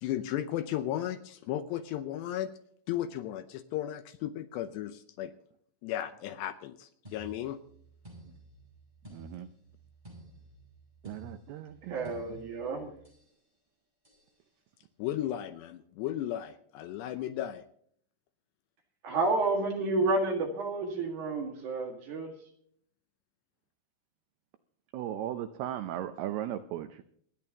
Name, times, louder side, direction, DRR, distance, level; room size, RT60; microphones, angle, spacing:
voice 1, 0.0-2.5 2.9-5.3 5.8-7.6 15.0-17.6, left 12 dB, 80° left, 10 dB, 2.6 m, -35 dB
sound 1, 7.0-13.3 14.0-14.3, right 1 dB, 10° right, 7.8 m, -53 dB
voice 2, 9.1-9.5 11.0-12.4 24.9-27.0, right 11 dB, 80° right, 9 dB, 2.3 m, -37 dB
voice 3, 11.8-12.9 19.0-22.4, right 2 dB, 55° right, 2 dB, 2.7 m, -30 dB
27.5 x 10.5 x 2.9 m, 0.64 s
omnidirectional pair, 5.4 m